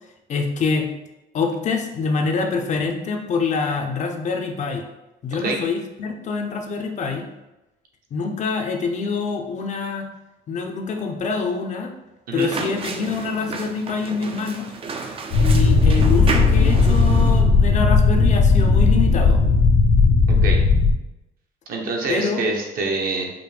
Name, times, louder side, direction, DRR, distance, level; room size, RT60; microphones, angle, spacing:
voice 1, 0.3-0.9 1.3-4.8 5.2-7.3 8.1-10.1 10.5-11.9 12.3-14.6 15.4-19.4 22.1-22.4, left 4 dB, 45° left, 4 dB, 0.6 m, -25 dB
sound 1, 12.4-17.4, right 4 dB, 35° right, 0.4 m, -31 dB
sound 2, 15.3-20.9, left 4 dB, 85° left, 0.7 m, -16 dB
voice 2, 20.3-20.6 21.7-23.3, right 3 dB, 60° right, 1 dB, 0.9 m, -25 dB
5.0 x 2.1 x 3.2 m, 0.97 s
cardioid pair, 110°, 17 cm